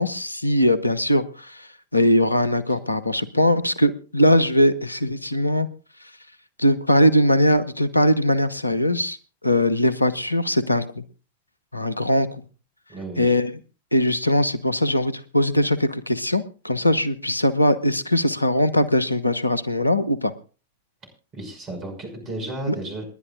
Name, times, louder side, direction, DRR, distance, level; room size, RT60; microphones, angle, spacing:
voice 1, 0.0-5.7 6.6-9.2 9.4-11.0 11.7-12.4 13.2-13.5 13.9-20.3 22.7-22.8, left 1 dB, 85° left, 15 dB, 0.8 m, -20 dB
voice 2, 12.9-13.3 21.3-23.1, right 2 dB, 30° right, 5 dB, 5.9 m, -33 dB
28.0 x 11.0 x 2.5 m, 0.36 s
figure-of-eight pair, 90°, 0 cm